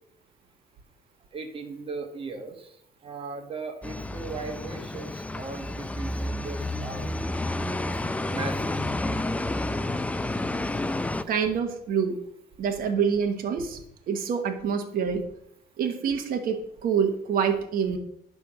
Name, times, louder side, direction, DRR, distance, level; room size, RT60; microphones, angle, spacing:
voice 1, 1.3-2.7 3.0-6.1 6.4-7.1 8.3-8.6 8.9-9.0, right 3 dB, 35° right, 4 dB, 1.5 m, -37 dB
sound 1, 3.8-11.2, left 2 dB, 10° left, 0.4 m, -30 dB
voice 2, 11.3-12.2 12.6-13.8 14.1-15.2 15.8-18.0, right 7 dB, 60° right, 4 dB, 1.2 m, -26 dB
10.5 x 3.5 x 6.3 m, 0.75 s
cardioid pair, 110°, 17 cm